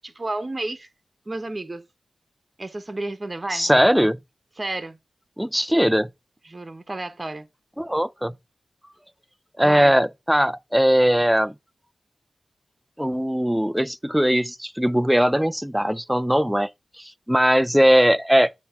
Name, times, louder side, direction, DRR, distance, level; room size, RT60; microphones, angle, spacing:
voice 1, 0.0-0.9 1.3-1.8 2.6-3.7 4.6-5.0 6.5-7.5 9.6-10.0, right 2 dB, 35° right, 1.1 m, -31 dB
voice 2, 3.5-4.2 5.4-6.1 7.8-8.4 9.6-11.5 13.0-16.7 17.0-18.6, equal, 5° right, 0.4 m, -20 dB
8.5 x 3.0 x 5.8 m
cardioid pair, 50°, 0 cm